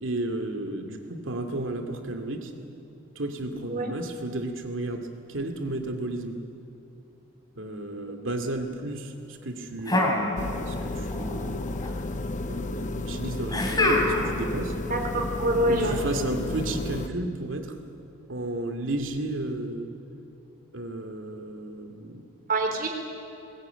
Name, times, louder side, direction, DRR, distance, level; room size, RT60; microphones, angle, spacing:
voice 1, 0.0-2.5 3.2-6.4 7.6-11.7 12.5-14.8 15.7-17.8 18.3-19.9 20.7-22.2, right 2 dB, 75° right, 5 dB, 2.3 m, -33 dB
sound 1, 9.9-10.9 11.1-11.9 13.5-14.4, left 1 dB, 20° left, 3.0 m, -25 dB
sound 2, 10.4-17.1, left 2 dB, 40° left, 0.8 m, -32 dB
voice 2, 14.9-16.2 22.5-22.9, right 1 dB, 45° right, 3 dB, 3.6 m, -26 dB
20.5 x 20.5 x 9.2 m, 2.9 s
head